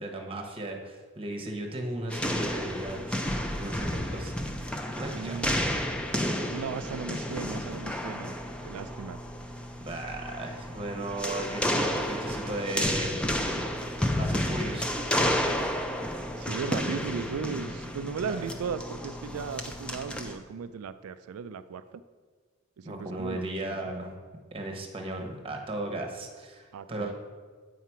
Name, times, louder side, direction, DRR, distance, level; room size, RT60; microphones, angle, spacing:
voice 1, 0.0-4.4 4.9-5.4 9.8-13.2 14.2-14.9 18.3-18.4 22.8-24.1 24.5-27.1, right 1 dB, 25° right, 2 dB, 1.0 m, -36 dB
sound 1, 2.1-20.4, equal, 5° left, 0.5 m, -31 dB
voice 2, 5.1-5.6 6.5-8.4 8.6-9.2 16.4-22.0 22.8-23.9 26.7-27.1, right 6 dB, 85° right, 12 dB, 0.4 m, -36 dB
8.4 x 5.7 x 4.6 m, 1.5 s
head